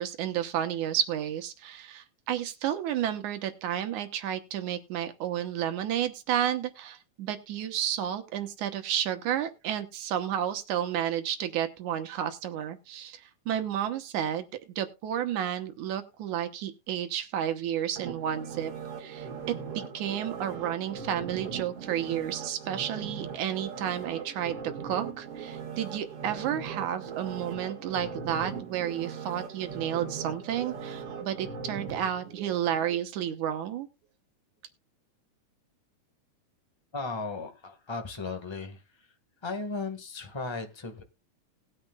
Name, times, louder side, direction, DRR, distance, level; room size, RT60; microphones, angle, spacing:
voice 1, 0.0-14.5 14.8-18.7 19.0-19.3 19.7-24.6 24.8-33.9, right 10 dB, 80° right, 7 dB, 2.4 m, -31 dB
sound 1, 18.0-33.0 33.4-33.5, right 6 dB, 50° right, 2.6 m, -39 dB
voice 2, 36.9-39.1 39.4-41.0, left 3 dB, 35° left, 6 dB, 0.4 m, -36 dB
19.0 x 9.4 x 2.3 m, 0.27 s
omnidirectional pair, 3.5 m